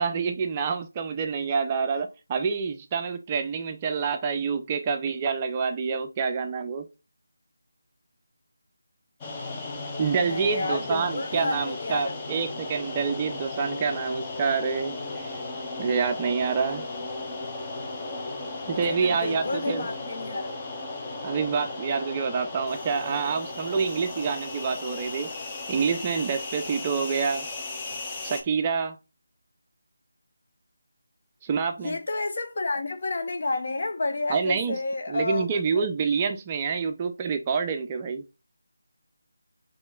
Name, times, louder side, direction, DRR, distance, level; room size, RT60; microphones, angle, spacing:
voice 1, 0.0-6.9 10.0-15.4 15.8-16.8 18.7-19.9 21.2-25.3 25.7-27.5 28.2-29.0 31.4-32.0 34.3-34.8 35.1-38.2, right 5 dB, 25° right, 0.4 m, -27 dB
sound 1, 9.2-28.4, left 2 dB, 20° left, 0.7 m, -35 dB
voice 2, 10.2-12.1 18.6-20.5 31.8-35.9, left 3 dB, 50° left, 0.8 m, -30 dB
6.0 x 3.0 x 2.3 m
figure-of-eight pair, 160°, 0 cm